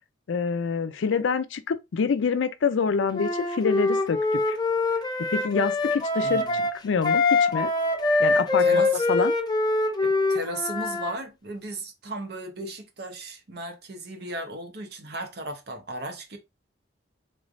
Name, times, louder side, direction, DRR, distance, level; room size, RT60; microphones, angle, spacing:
voice 1, 0.3-4.2 4.5-4.6 5.3-7.7 8.2-8.8 9.1-9.3, left 5 dB, 85° left, 0.4 m, -26 dB
Wind instrument woodwind instrument, 3.1-11.1, left 3 dB, 20° left, 0.6 m, -24 dB
voice 2, 6.2-6.6 8.6-9.1 10.0-16.4, right 2 dB, 60° right, 0.8 m, -36 dB
3.7 x 3.1 x 2.5 m
head